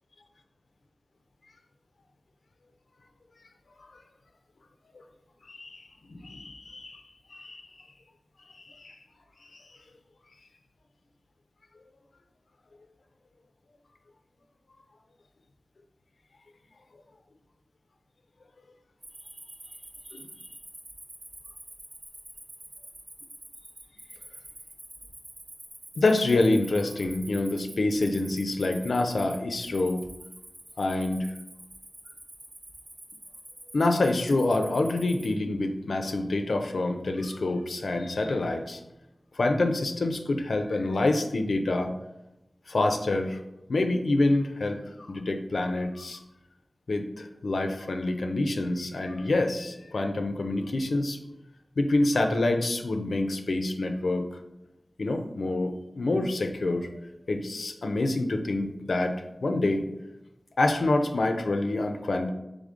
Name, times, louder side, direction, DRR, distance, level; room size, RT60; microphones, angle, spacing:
voice 1, 5.5-7.0 7.3-7.6 8.5-9.0 9.5-9.6 20.1-20.3 26.0-30.1 30.8-31.3 33.7-38.8 39.3-41.9 42.7-43.4 43.7-44.8 45.1-46.2 46.9-51.2 51.8-54.3 55.0-56.9 57.3-59.9 60.6-62.3, left 2 dB, 85° left, 6 dB, 0.4 m, -27 dB
Cricket, 19.0-35.3, right 1 dB, 55° right, 0.9 m, -47 dB
3.6 x 3.5 x 3.7 m, 0.93 s
cardioid pair, 40°, 0 cm